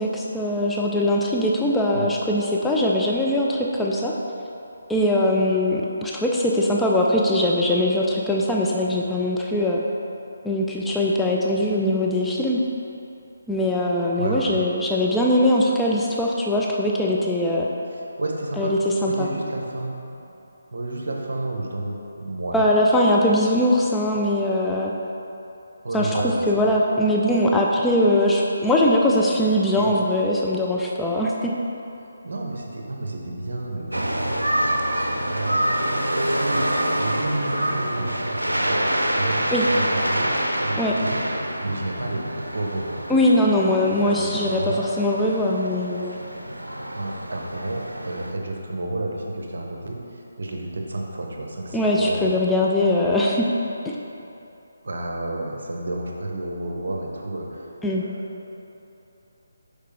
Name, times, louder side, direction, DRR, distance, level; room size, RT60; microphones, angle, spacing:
voice 1, 0.0-4.1 4.9-9.8 10.4-12.6 13.5-17.7 18.6-19.3 22.5-24.9 25.9-26.2 26.5-31.5 39.5-39.6 40.8-40.9 43.1-46.2 51.7-53.5 57.8-58.0, left 1 dB, 5° left, -3 dB, 0.4 m, -21 dB
voice 2, 14.1-14.6 17.9-18.8 19.0-19.9 20.7-22.6 25.8-26.7 29.8-29.9 32.0-34.4 34.9-36.1 36.4-38.8 39.2-40.3 40.6-41.2 41.6-43.4 44.0-44.8 46.9-52.4 54.8-57.7 58.0-58.5, right 2 dB, 60° right, 0 dB, 0.9 m, -31 dB
sound 1, 33.9-48.3, right 1 dB, 85° right, 0.5 m, -26 dB
6.5 x 5.1 x 3.3 m, 2.9 s
figure-of-eight pair, 145°, 0 cm